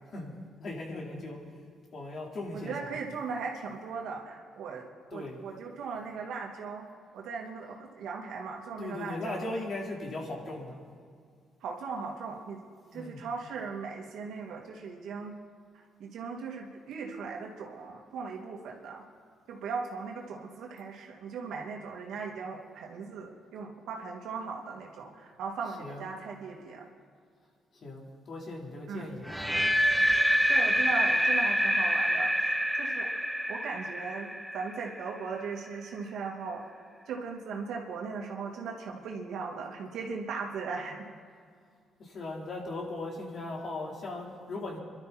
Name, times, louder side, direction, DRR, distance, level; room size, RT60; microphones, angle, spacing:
voice 1, 0.6-1.4 1.9-2.7 5.1-5.4 8.8-10.8 12.9-13.2 25.8-26.0 27.7-29.4 42.0-44.8, left 2 dB, 50° left, -2 dB, 4.2 m, -38 dB
voice 2, 2.5-9.5 11.6-12.6 12.9-15.3 16.0-19.0 19.5-26.9 28.9-29.1 30.5-32.3 32.8-33.1 33.5-41.0, right 5 dB, 80° right, 0 dB, 2.5 m, -38 dB
sound 1, 29.3-35.3, equal, 5° right, 0.6 m, -26 dB
24.5 x 12.5 x 4.4 m, 2.2 s
cardioid pair, 90°, 0 cm